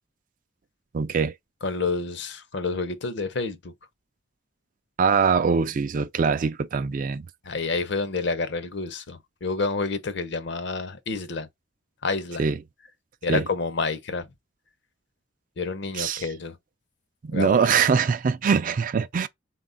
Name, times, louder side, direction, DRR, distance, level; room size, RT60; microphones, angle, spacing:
voice 1, 0.9-1.3 5.0-7.3 12.4-12.6 13.3-13.4 16.0-16.2 17.2-19.3, right 5 dB, 45° right, 0.3 m, -23 dB
voice 2, 1.6-3.7 7.4-11.5 12.0-12.5 13.2-14.3 15.6-16.6 17.3-17.8, left 4 dB, 60° left, 0.7 m, -29 dB
4.1 x 2.3 x 3.8 m
head